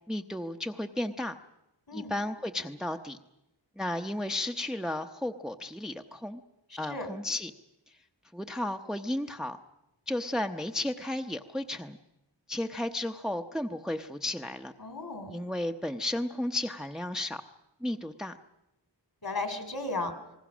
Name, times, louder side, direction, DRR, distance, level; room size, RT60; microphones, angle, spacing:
voice 1, 0.1-1.4 1.9-3.2 3.8-6.4 6.8-7.5 8.3-9.6 10.1-12.0 12.5-14.7 15.3-17.4 17.8-18.4, left 1 dB, ahead, 6 dB, 0.8 m, -33 dB
voice 2, 14.8-15.4 19.2-20.1, left 2 dB, 55° left, 7 dB, 3.0 m, -35 dB
28.5 x 20.0 x 6.2 m, 0.94 s
wide cardioid pair, 45°, 44 cm